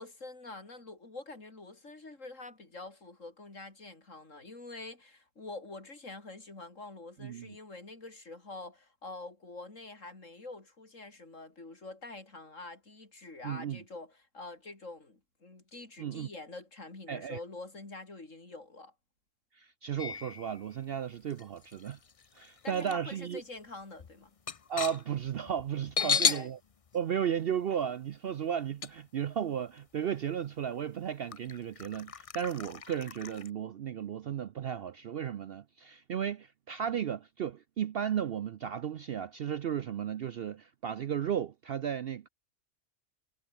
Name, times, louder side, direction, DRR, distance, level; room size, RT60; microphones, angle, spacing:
voice 1, 0.0-18.9 22.6-24.3 26.0-26.5, left 2 dB, 65° left, 4.5 m, -46 dB
voice 2, 7.2-7.5 13.4-13.8 16.0-16.3 17.1-17.4 19.6-22.0 22.4-23.4 24.7-26.6 26.9-42.3, right 9 dB, 60° right, 0.7 m, -34 dB
sound 1, 20.0-20.7 21.3-22.9 23.3-23.4 23.8-26.5 26.9-27.0 28.8-28.9 29.8-29.9 30.4-30.5 31.3-33.5, left 6 dB, 35° left, 0.5 m, -34 dB
omnidirectional pair, 1.4 m